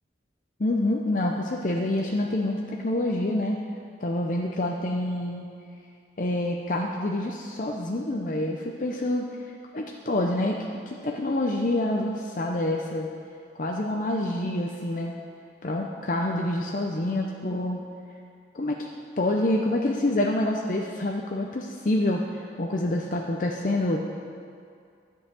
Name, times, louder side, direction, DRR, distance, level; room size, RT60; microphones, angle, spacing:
voice 1, 0.6-3.6 4.0-5.5 6.2-9.2 9.7-10.6 10.9-13.1 13.6-15.1 15.6-17.8 18.5-18.9 19.2-24.0, left 1 dB, 45° left, 0 dB, 0.6 m, -27 dB
10.5 x 5.6 x 8.1 m, 2.4 s
head